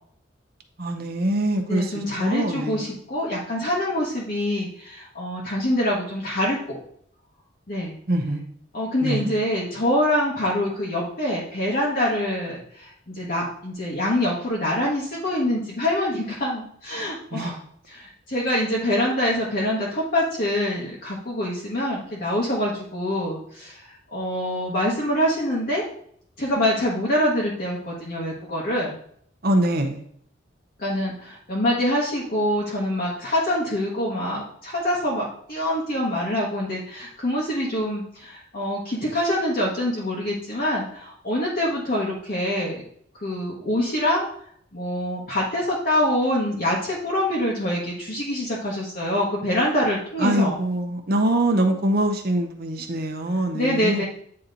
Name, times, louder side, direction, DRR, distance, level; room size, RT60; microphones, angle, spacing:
voice 1, 0.8-2.9 8.1-8.4 9.0-9.3 17.3-17.5 29.4-30.0 50.2-54.0, right 1 dB, 50° right, 4 dB, 0.8 m, -24 dB
voice 2, 1.7-6.8 7.7-8.0 8.7-17.6 17.9-23.8 24.1-25.8 26.4-29.0 30.8-42.8 43.2-44.3 44.7-50.6 53.5-54.0, left 1 dB, 45° left, -5 dB, 1.1 m, -25 dB
8.6 x 2.9 x 3.8 m, 0.63 s
head